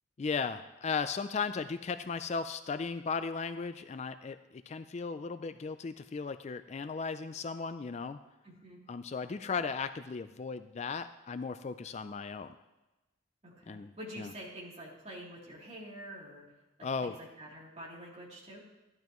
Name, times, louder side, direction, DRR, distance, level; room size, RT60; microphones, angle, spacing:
voice 1, 0.2-8.2 8.9-12.6 13.7-14.3 16.8-17.1, left 5 dB, 35° left, 11 dB, 0.3 m, -36 dB
voice 2, 8.4-8.8 13.4-16.4 16.8-18.6, equal, 35° right, -5 dB, 3.1 m, -47 dB
14.0 x 12.0 x 3.0 m, 1.1 s
head